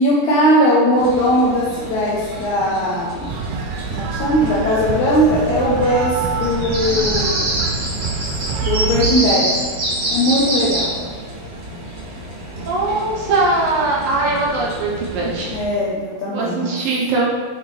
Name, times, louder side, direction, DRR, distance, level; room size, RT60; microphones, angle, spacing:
voice 1, 0.0-3.3 3.9-7.4 8.6-9.5 10.1-10.9 15.5-16.8, equal, 75° left, -7 dB, 1.8 m, -18 dB
sound 1, 1.0-15.6, right 1 dB, 55° right, 1.9 m, -27 dB
sound 2, 3.3-9.1, right 5 dB, 90° right, 1.9 m, -26 dB
voice 2, 6.7-7.1 12.7-15.5 16.3-17.3, right 2 dB, 70° right, -4 dB, 2.5 m, -21 dB
8.2 x 4.3 x 3.3 m, 1.5 s
omnidirectional pair, 4.5 m